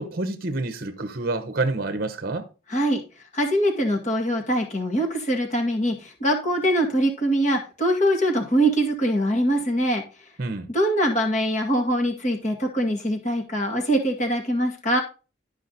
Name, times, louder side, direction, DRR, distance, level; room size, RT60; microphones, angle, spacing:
voice 1, 0.0-2.5 10.4-10.7, right 2 dB, 45° right, 0.9 m, -28 dB
voice 2, 2.7-3.0 3.3-10.0 10.7-15.0, equal, 35° left, 2.1 m, -23 dB
12.0 x 5.1 x 4.0 m
head